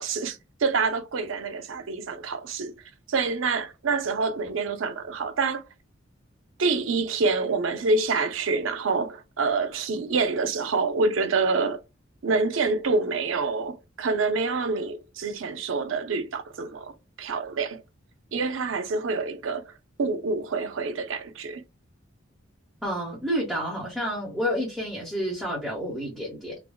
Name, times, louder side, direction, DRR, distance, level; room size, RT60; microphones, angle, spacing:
voice 1, 0.0-5.6 6.6-11.8 12.2-17.8 18.3-19.7 20.0-21.6, right 4 dB, 70° right, 0.5 m, -27 dB
voice 2, 22.8-26.6, equal, ahead, 0.9 m, -29 dB
3.4 x 2.1 x 2.3 m
head